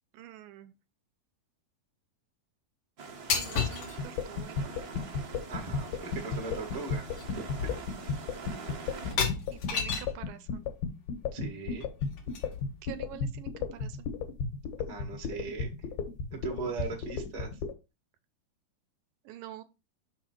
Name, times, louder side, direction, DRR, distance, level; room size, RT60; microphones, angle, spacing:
voice 1, 0.1-0.7 3.3-4.7 9.5-10.7 12.8-14.1 19.3-19.6, right 12 dB, 80° right, 10 dB, 2.2 m, -46 dB
sound 1, 3.0-9.1, right 4 dB, 60° right, 0.9 m, -44 dB
sound 2, 3.3-4.0 6.0-6.1 6.4-6.7 7.1-7.3 7.6-8.2 9.0-10.2 11.8-12.8, left 6 dB, 55° left, 2.5 m, -32 dB
sound 3, 4.0-17.7, left 5 dB, 80° left, 3.3 m, -33 dB
voice 2, 5.5-7.1 7.4-7.7 11.3-11.9 14.9-15.9 16.3-17.5, right 4 dB, 40° right, 1 dB, 0.5 m, -39 dB
6.2 x 6.0 x 4.4 m, 0.26 s
omnidirectional pair, 4.3 m